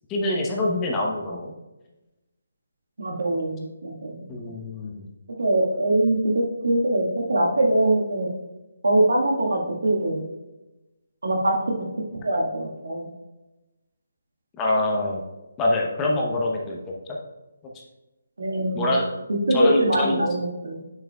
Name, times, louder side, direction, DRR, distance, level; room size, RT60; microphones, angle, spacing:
voice 1, 0.1-1.5 4.3-5.1 14.6-15.2 15.6-16.8 18.7-19.1 19.5-20.2, left 1 dB, 15° left, -2 dB, 0.9 m, -25 dB
voice 2, 3.0-4.5 5.4-8.3 8.8-10.2 11.2-11.6 12.2-13.1 18.4-18.9 19.5-20.8, right 1 dB, 70° right, 0 dB, 1.6 m, -23 dB
8.5 x 6.5 x 2.3 m, 1.0 s
figure-of-eight pair, 145°, 0 cm